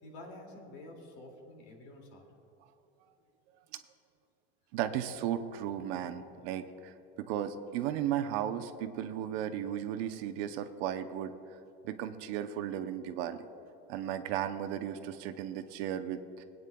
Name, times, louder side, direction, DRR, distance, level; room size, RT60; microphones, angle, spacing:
voice 1, 0.0-2.3, left 1 dB, 75° left, 1 dB, 2.4 m, -49 dB
voice 2, 4.7-11.3 11.8-13.5 13.9-16.4, right 10 dB, 60° right, 9 dB, 0.7 m, -35 dB
21.5 x 9.1 x 2.3 m, 2.9 s
supercardioid pair, 140°, 34 cm